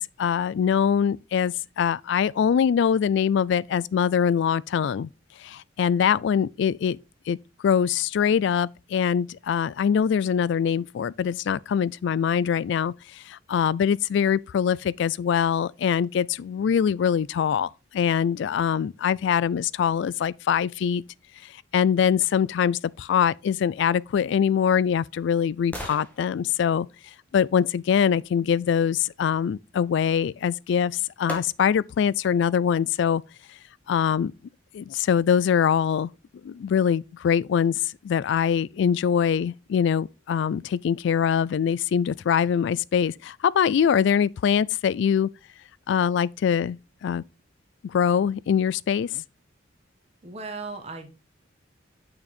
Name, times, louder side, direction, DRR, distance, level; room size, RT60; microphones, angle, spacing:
voice 1, 0.0-5.1 5.4-7.0 7.3-7.4 7.6-12.9 13.3-21.0 21.7-26.9 27.3-33.2 33.9-34.3 34.7-36.1 36.4-45.3 45.9-46.8 47.0-47.2 47.9-49.2, left 7 dB, 65° left, 0.3 m, -23 dB
sound 1, 24.4-28.3 30.4-30.5 31.3-32.0 32.5-32.6, equal, 10° left, 1.5 m, -43 dB
voice 2, 50.2-51.1, right 3 dB, 35° right, 1.3 m, -36 dB
6.4 x 5.9 x 4.2 m
head